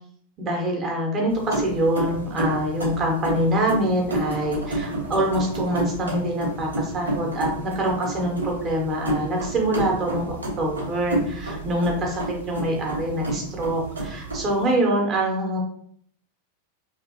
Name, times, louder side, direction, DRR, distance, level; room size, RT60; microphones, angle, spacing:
voice 1, 0.4-15.6, right 1 dB, 30° right, 0 dB, 1.0 m, -25 dB
sound 1, 1.3-14.7, right 1 dB, 80° right, 0.9 m, -30 dB
3.0 x 2.6 x 2.7 m, 0.63 s
figure-of-eight pair, 90°, 0 cm